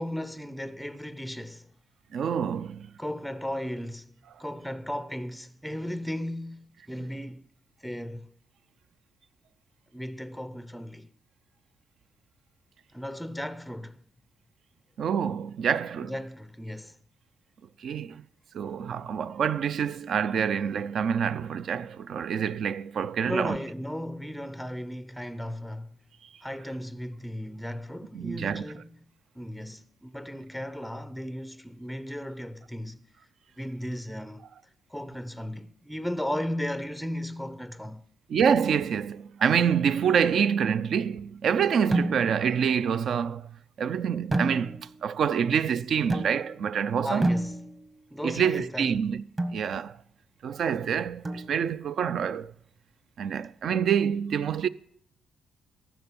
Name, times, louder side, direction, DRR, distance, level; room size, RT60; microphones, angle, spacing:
voice 1, 0.0-1.7 3.0-4.1 4.4-7.5 7.8-8.3 9.9-11.1 12.9-14.0 16.0-17.0 23.3-26.0 26.4-29.0 29.3-33.0 33.6-34.5 34.9-38.1 47.0-47.6 48.1-48.9, equal, ahead, 0.5 m, -35 dB
voice 2, 2.1-2.9 15.0-16.1 17.8-18.2 18.5-23.6 28.1-28.6 38.3-43.5 43.8-47.3 48.2-49.2 49.5-50.0 50.4-52.5 53.2-54.7, right 7 dB, 60° right, 0.5 m, -26 dB
sound 1, 41.9-42.5 44.3-45.0 46.1-46.7 47.2-48.0 49.4-49.7 51.2-51.9, right 1 dB, 25° right, 1.1 m, -30 dB
14.5 x 6.0 x 7.0 m
cardioid pair, 90°, 0 cm